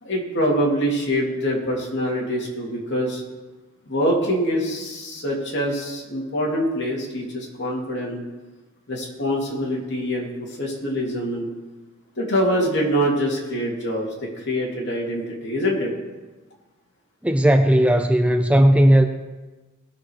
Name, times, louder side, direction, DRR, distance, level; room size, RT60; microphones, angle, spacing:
voice 1, 0.0-3.2 3.9-8.2 8.9-11.5 12.2-14.1 14.4-15.9, equal, 55° left, -2 dB, 2.9 m, -24 dB
voice 2, 17.2-19.1, right 1 dB, 5° right, 6 dB, 0.4 m, -16 dB
19.0 x 6.5 x 4.8 m, 1.2 s
head